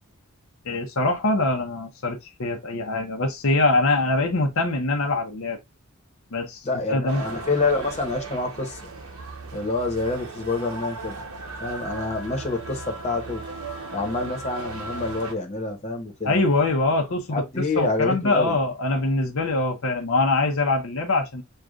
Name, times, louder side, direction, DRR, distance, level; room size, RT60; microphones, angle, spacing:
voice 1, 0.6-5.6 6.3-7.2 16.2-17.4 17.7-21.4, left 2 dB, 65° left, 0.7 m, -23 dB
voice 2, 6.6-8.8 9.5-11.2 11.6-13.4 13.9-16.4 17.3-18.6, left 3 dB, 30° left, 1.0 m, -27 dB
sound 1, 7.1-15.3, right 3 dB, 80° right, 1.0 m, -37 dB
6.4 x 2.4 x 2.4 m
head